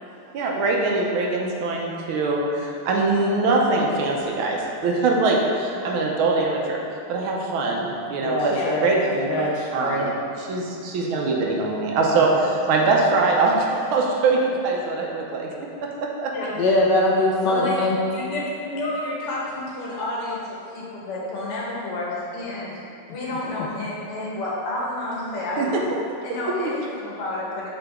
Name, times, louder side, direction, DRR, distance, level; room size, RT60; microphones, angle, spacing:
voice 1, 0.3-6.8 7.1-8.5 8.8-9.3 9.7-15.5 15.8-16.3 25.6-26.2, right 3 dB, 75° right, -1 dB, 1.5 m, -23 dB
voice 2, 8.2-9.0 9.3-10.1 16.5-18.0, left 1 dB, 70° left, -2 dB, 1.1 m, -22 dB
voice 3, 17.5-17.8 18.1-22.8 23.1-25.8 26.2-27.7, left 2 dB, 90° left, -5 dB, 2.2 m, -30 dB
7.7 x 3.9 x 3.4 m, 2.7 s
omnidirectional pair, 2.4 m